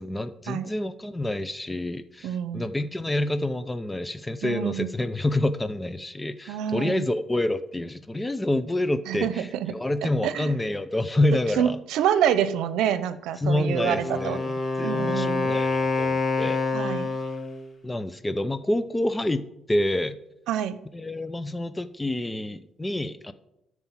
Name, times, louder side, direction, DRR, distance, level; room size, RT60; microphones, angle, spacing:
voice 1, 0.0-11.8 13.4-14.5 14.8-16.6 17.8-20.2 20.9-23.3, left 1 dB, 15° left, 12 dB, 0.6 m, -28 dB
voice 2, 2.2-2.7 4.4-4.9 6.5-7.0 9.1-9.3 9.6-9.7 10.0-10.5 11.6-14.4 14.8-15.6 16.7-17.1 20.5-20.8, right 9 dB, 90° right, 13 dB, 0.7 m, -27 dB
Wind instrument woodwind instrument, 13.8-17.6, left 3 dB, 35° left, 1.6 m, -27 dB
12.5 x 4.7 x 7.4 m, 0.83 s
cardioid pair, 90°, 0 cm